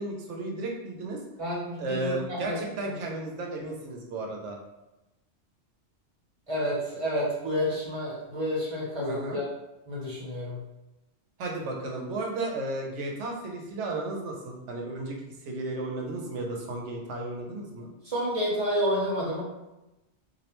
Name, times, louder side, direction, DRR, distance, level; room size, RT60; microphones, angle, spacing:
voice 1, 0.0-1.2 1.8-4.6 9.1-9.4 11.4-17.9, right 2 dB, 90° right, 0 dB, 0.9 m, -34 dB
voice 2, 1.4-2.9 6.5-9.5 9.9-10.6 18.0-19.4, equal, 35° right, -6 dB, 0.7 m, -30 dB
2.5 x 2.1 x 2.9 m, 0.97 s
omnidirectional pair, 1.2 m